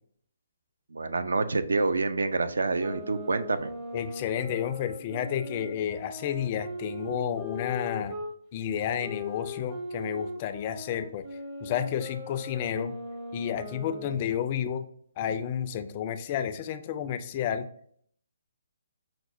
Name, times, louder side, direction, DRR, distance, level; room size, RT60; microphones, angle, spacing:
voice 1, 0.9-3.7, right 3 dB, 70° right, 10 dB, 0.3 m, -27 dB
sound 1, 2.8-8.3 9.0-14.5, left 2 dB, 30° right, 0.7 m, -40 dB
voice 2, 3.9-8.2 8.5-13.0 13.3-14.9 15.2-17.7, left 9 dB, 30° left, 9 dB, 0.3 m, -31 dB
5.6 x 2.0 x 2.5 m, 0.62 s
figure-of-eight pair, 135°, 0 cm